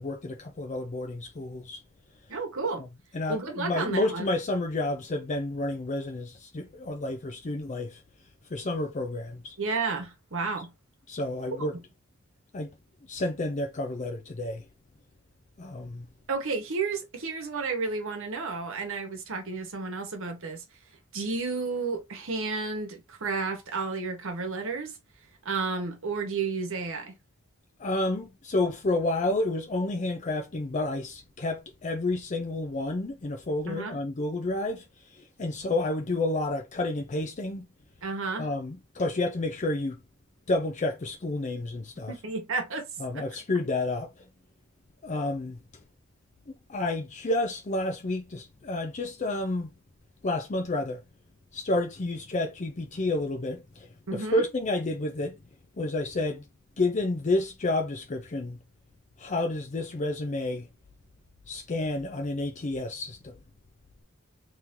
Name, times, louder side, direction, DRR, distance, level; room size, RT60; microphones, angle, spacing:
voice 1, 0.0-1.8 3.1-8.0 8.5-9.6 11.1-11.8 12.5-12.7 13.1-14.6 15.6-16.1 27.8-34.8 35.4-37.7 38.4-40.0 40.5-42.1 43.0-44.2 45.0-45.6 46.5-49.7 50.2-51.0 51.5-55.3 55.8-56.4 56.8-58.6 59.2-60.7 61.5-63.4, left 2 dB, 35° left, 0.5 m, -30 dB
voice 2, 2.3-2.9 3.3-4.3 9.6-10.7 11.5-11.7 16.3-20.6 21.1-25.0 25.4-27.1 33.7-34.0 38.0-38.5 42.0-42.9 43.1-43.3 54.1-54.4, right 4 dB, 65° right, 1.1 m, -32 dB
3.1 x 2.8 x 3.6 m
head